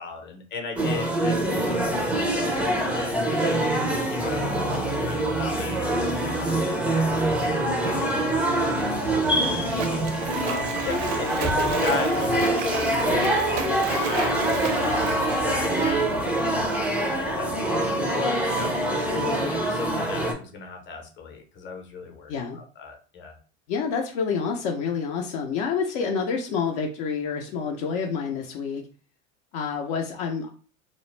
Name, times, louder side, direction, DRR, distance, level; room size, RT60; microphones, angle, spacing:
voice 1, 0.0-3.7 4.1-5.8 6.2-10.0 10.4-14.4 14.8-16.7 17.0-23.4, left 5 dB, 30° left, 3 dB, 0.8 m, -36 dB
sound 1, 0.7-20.3, right 1 dB, 5° right, 0.4 m, -25 dB
Splash splatter, 8.8-16.7, right 6 dB, 80° right, 0.5 m, -34 dB
voice 2, 23.7-28.8 29.5-30.5, left 6 dB, 60° left, 1 dB, 0.6 m, -28 dB
2.3 x 2.0 x 3.1 m, 0.38 s
hypercardioid pair, 95°, 38 cm